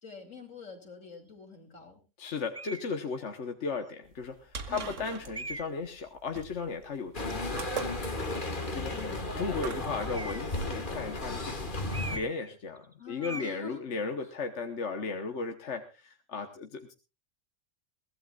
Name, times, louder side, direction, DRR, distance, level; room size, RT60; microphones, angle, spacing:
voice 1, 0.0-2.0 4.7-4.9 8.9-9.4 13.0-13.8 14.2-14.3, left 4 dB, 85° left, 4 dB, 3.4 m, -46 dB
voice 2, 2.2-7.7 8.1-8.9 9.4-16.9, left 4 dB, 65° left, 6 dB, 1.5 m, -36 dB
sound 1, 2.5-2.9 3.7-3.8 5.3-5.9 10.0-10.6 11.9-12.5 12.8-12.9 13.2-13.6, right 2 dB, 15° right, 0.6 m, -40 dB
sound 2, 4.1-10.1, right 6 dB, 75° right, 1.7 m, -41 dB
sound 3, 7.1-12.2, left 2 dB, 40° left, 2.0 m, -34 dB
22.5 x 16.5 x 2.5 m, 0.31 s
omnidirectional pair, 1.3 m